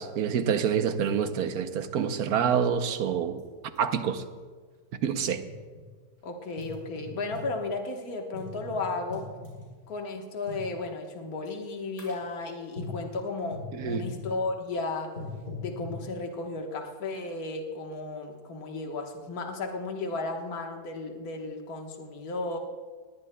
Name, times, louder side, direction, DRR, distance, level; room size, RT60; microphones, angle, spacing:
voice 1, 0.0-3.4 3.8-4.2 5.0-5.4 13.7-14.0, right 7 dB, 65° right, 9 dB, 1.2 m, -27 dB
sound 1, 3.4-3.5 3.8-3.9 4.7-5.8 6.6-7.5 8.3-9.7 10.5-10.7 11.5-11.7 12.0-12.3 12.8-13.1 13.5-14.3 15.2-16.0, left 3 dB, 40° left, 4.3 m, -40 dB
voice 2, 6.2-9.3 9.9-15.1 15.6-22.6, left 3 dB, 60° left, 2 dB, 1.8 m, -34 dB
19.5 x 19.0 x 2.2 m, 1.5 s
omnidirectional pair, 1.8 m